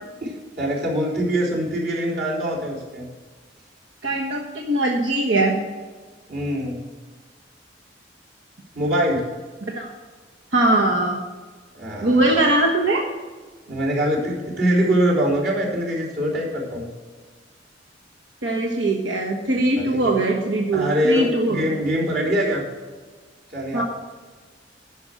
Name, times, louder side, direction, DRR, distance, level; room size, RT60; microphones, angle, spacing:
voice 1, 0.6-3.1 6.3-6.8 8.7-9.2 11.7-12.5 13.7-16.9 19.8-20.1 20.7-22.6 23.5-23.8, equal, 60° right, -4 dB, 3.8 m, -23 dB
voice 2, 4.0-5.6 9.7-9.9 10.5-11.2 12.0-13.0 18.4-21.6 23.7-23.8, right 2 dB, 85° right, -1 dB, 1.3 m, -21 dB
11.5 x 5.3 x 7.6 m, 1.4 s
head